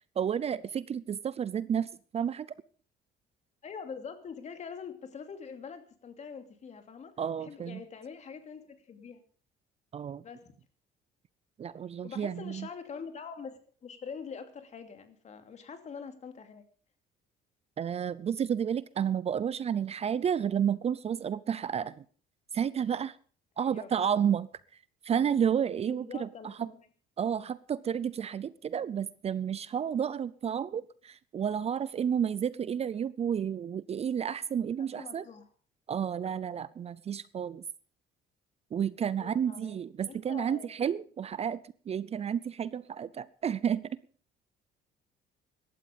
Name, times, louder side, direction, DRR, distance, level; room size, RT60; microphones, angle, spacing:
voice 1, 0.2-2.5 7.2-7.8 9.9-10.2 11.6-12.7 17.8-22.0 22.5-23.2 23.6-24.5 25.0-26.7 27.2-35.2 35.9-37.6 38.7-44.0, right 8 dB, 40° right, 19 dB, 0.6 m, -31 dB
voice 2, 3.6-7.1 7.4-9.2 10.2-10.5 12.0-16.6 23.6-24.2 25.9-26.9 34.8-35.5 39.2-39.8 40.1-40.7, left 6 dB, 40° left, 7 dB, 2.7 m, -44 dB
16.5 x 12.5 x 5.3 m, 0.43 s
cardioid pair, 110°, 17 cm